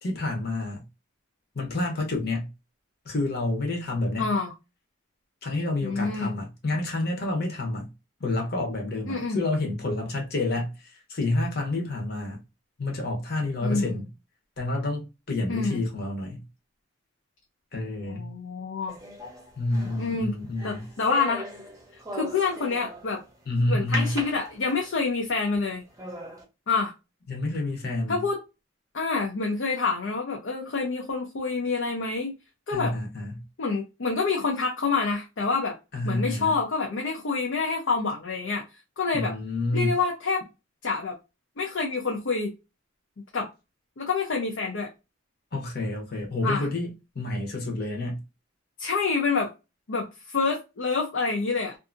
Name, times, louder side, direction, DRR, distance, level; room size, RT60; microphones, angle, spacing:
voice 1, 0.0-0.8 1.5-2.5 3.0-4.3 5.4-7.9 8.2-10.7 11.1-12.4 12.8-14.1 14.6-16.4 17.7-18.3 19.6-20.9 23.5-24.2 27.3-28.2 32.7-33.4 35.9-36.5 39.1-39.9 45.5-48.2, left 2 dB, 50° left, 0.9 m, -29 dB
voice 2, 4.2-4.5 5.8-6.3 9.1-9.4 13.6-14.0 15.5-15.8 18.0-19.0 20.0-20.3 20.6-21.4 22.1-23.2 23.7-25.8 26.7-26.9 28.1-28.4 28.9-32.3 32.7-32.9 33.6-35.8 36.0-38.7 39.0-39.3 39.7-40.4 40.8-41.2 41.6-42.5 43.3-43.5 44.0-44.9 46.4-46.7 48.8-49.5 49.9-51.8, left 4 dB, 65° left, 0.6 m, -27 dB
sound 1, 18.9-23.3 23.9-25.0 25.5-25.6 26.0-26.4, right 1 dB, 15° right, 0.7 m, -38 dB
2.6 x 2.5 x 2.4 m
head